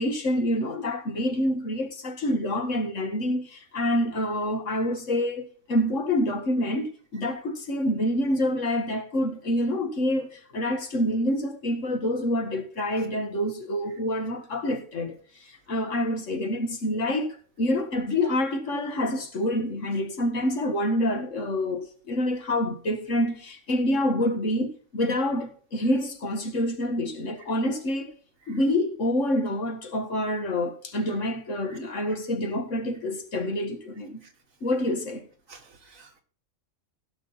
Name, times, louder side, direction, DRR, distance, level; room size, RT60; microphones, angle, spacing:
voice 1, 0.0-28.1 28.5-34.2 34.6-35.3, left 1 dB, 65° left, 2.0 m, -27 dB
voice 2, 35.5-36.2, right 4 dB, 75° right, 2.2 m, -52 dB
16.0 x 6.2 x 4.1 m
omnidirectional pair, 1.4 m